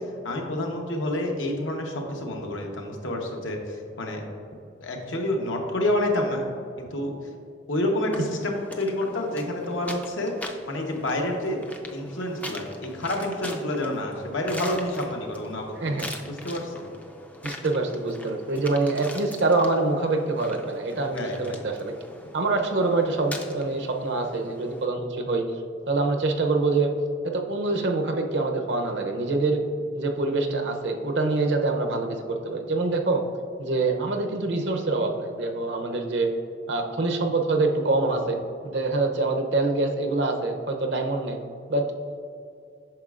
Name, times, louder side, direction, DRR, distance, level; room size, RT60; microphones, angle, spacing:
voice 1, 0.2-4.2 4.8-6.5 6.8-7.1 7.7-10.3 10.7-11.6 11.9-16.8 21.0-21.6, left 1 dB, 80° left, 1 dB, 1.0 m, -29 dB
sound 1, 8.1-24.9, left 1 dB, 5° left, 0.4 m, -42 dB
voice 2, 15.7-16.1 17.4-21.9 22.3-25.4 25.9-26.9 27.2-29.6 29.9-33.2 33.6-36.3 36.7-38.4 38.6-41.4 41.7-41.9, right 3 dB, 60° right, 4 dB, 0.6 m, -25 dB
8.9 x 6.2 x 2.4 m, 2.5 s
head